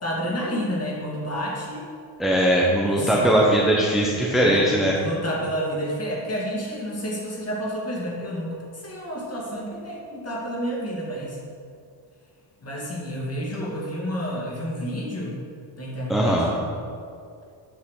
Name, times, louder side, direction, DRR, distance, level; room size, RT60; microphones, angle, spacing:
voice 1, 0.0-1.9 2.8-3.4 4.4-11.4 12.6-15.4 15.8-16.6, equal, 30° left, -2 dB, 2.2 m, -30 dB
voice 2, 2.2-4.9 16.1-16.5, right 1 dB, ahead, -4 dB, 0.8 m, -20 dB
8.7 x 5.6 x 6.4 m, 2.4 s
cardioid pair, 150°, 49 cm